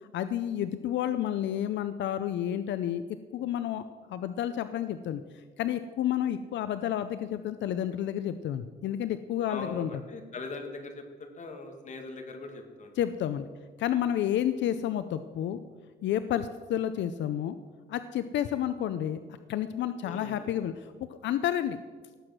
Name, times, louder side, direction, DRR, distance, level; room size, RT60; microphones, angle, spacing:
voice 1, 0.1-3.0 3.3-3.8 4.1-5.2 5.6-9.9 13.0-13.5 13.8-15.6 16.0-17.6 17.9-19.2 19.5-20.9 21.2-21.8, left 11 dB, 85° left, 11 dB, 0.6 m, -30 dB
voice 2, 9.5-12.9 18.5-18.6 20.0-20.5, left 3 dB, 40° left, 3 dB, 2.2 m, -41 dB
18.0 x 8.0 x 6.1 m, 1.5 s
cardioid pair, 155°, 18 cm